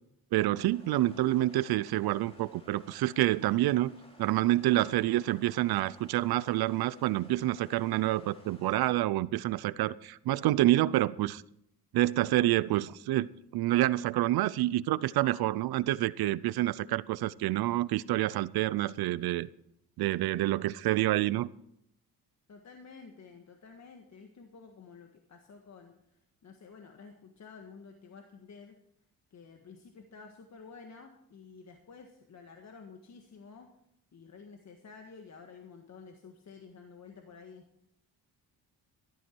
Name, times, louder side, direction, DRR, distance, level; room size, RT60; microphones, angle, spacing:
voice 1, 0.3-3.9 4.2-11.4 11.9-19.5 20.0-21.5, right 15 dB, 85° right, 19 dB, 0.6 m, -28 dB
sound 1, 0.7-8.8, left 1 dB, 15° left, 2.9 m, -57 dB
voice 2, 22.5-28.8 29.3-33.7 34.1-37.6, left 5 dB, 45° left, 4 dB, 1.6 m, -51 dB
14.0 x 13.0 x 4.5 m, 0.76 s
cardioid pair, 105°, 37 cm